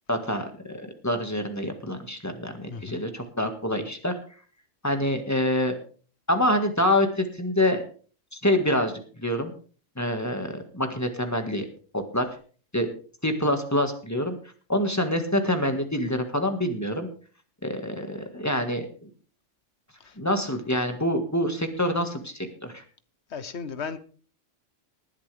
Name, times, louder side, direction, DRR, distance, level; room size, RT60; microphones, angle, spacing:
voice 1, 0.1-4.2 4.8-5.8 6.3-7.8 8.3-8.9 9.2-9.5 10.0-11.7 11.9-12.3 12.7-12.9 13.2-14.4 14.7-17.1 17.6-19.1 20.2-22.8, left 1 dB, 15° left, 1.7 m, -26 dB
voice 2, 2.7-3.0 20.0-20.1 23.3-24.0, left 5 dB, 65° left, 1.2 m, -35 dB
19.5 x 10.5 x 3.4 m
omnidirectional pair, 1.3 m